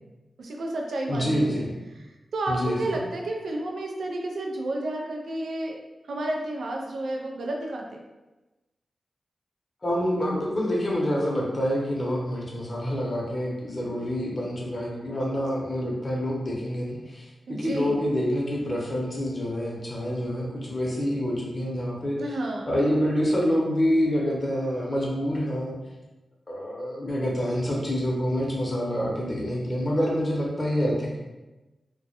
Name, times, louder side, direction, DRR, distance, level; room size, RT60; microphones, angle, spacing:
voice 1, 0.4-1.7 1.9-5.8 6.0-8.0 17.5-18.0 22.2-22.7, right 1 dB, 85° right, 0 dB, 0.4 m, -31 dB
voice 2, 1.1-1.7 2.5-3.0 9.8-22.2 22.7-25.7 26.5-31.2, equal, 40° left, -3 dB, 0.7 m, -27 dB
2.1 x 2.1 x 2.8 m, 1.1 s
cardioid pair, 60°, 0 cm